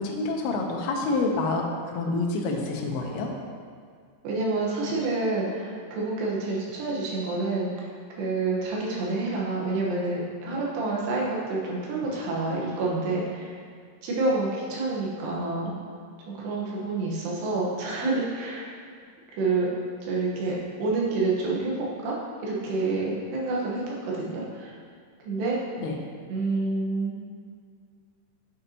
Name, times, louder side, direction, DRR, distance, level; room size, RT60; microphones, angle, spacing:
voice 1, 0.0-3.3 25.8-26.0, left 3 dB, 75° left, 1 dB, 2.5 m, -27 dB
voice 2, 4.2-7.9 8.2-13.6 14.0-15.7 16.3-18.7 19.3-19.7 20.0-24.7 25.3-25.6 26.3-27.2, right 3 dB, 75° right, -4 dB, 3.2 m, -28 dB
8.6 x 6.7 x 2.9 m, 2.1 s
omnidirectional pair, 5.1 m